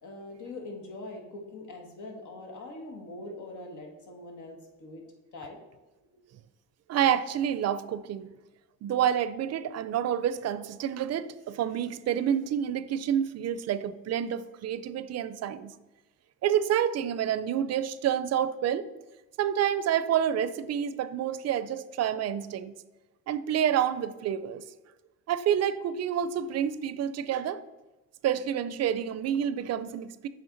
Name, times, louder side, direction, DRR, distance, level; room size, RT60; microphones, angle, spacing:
voice 1, 0.0-5.0 5.3-5.6 6.0-6.2, left 2 dB, 80° left, 1.4 m, -43 dB
voice 2, 6.9-8.3 8.8-15.7 16.4-18.9 19.4-22.7 23.3-24.6 25.3-27.6 28.2-30.3, right 9 dB, 60° right, 0.4 m, -28 dB
7.7 x 3.3 x 3.8 m
cardioid pair, 90°, 30 cm